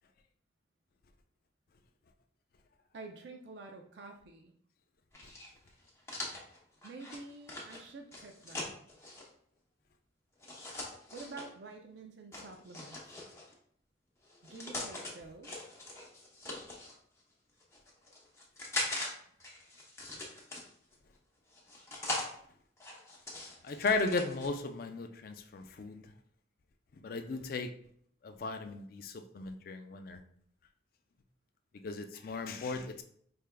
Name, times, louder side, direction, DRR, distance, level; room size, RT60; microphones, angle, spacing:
voice 1, 2.9-4.5 6.8-8.7 11.1-13.2 14.5-15.6, right 3 dB, 60° right, 4 dB, 0.4 m, -49 dB
sound 1, 5.1-9.3 10.4-11.5 12.3-13.5 14.2-15.1 15.4-16.9 17.6-19.1 19.4-20.9 21.5-22.3 22.8-24.5, left 2 dB, 15° left, 0.7 m, -41 dB
voice 2, 23.6-26.1 27.0-27.7 28.2-30.2 31.8-33.0, left 3 dB, 50° left, 7 dB, 0.4 m, -36 dB
4.7 x 3.3 x 2.2 m, 0.62 s
head